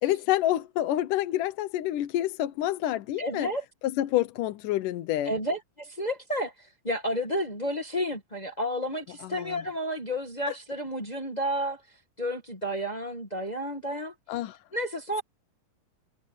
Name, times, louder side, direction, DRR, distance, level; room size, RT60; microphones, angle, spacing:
voice 1, 0.0-3.5 4.0-5.3 9.2-9.6 14.3-14.6, left 14 dB, 75° left, 2.3 m, -28 dB
voice 2, 3.2-3.6 5.2-6.5 6.8-11.8 12.2-14.1 14.7-15.2, equal, 35° left, 0.6 m, -31 dB
omnidirectional pair, 4.0 m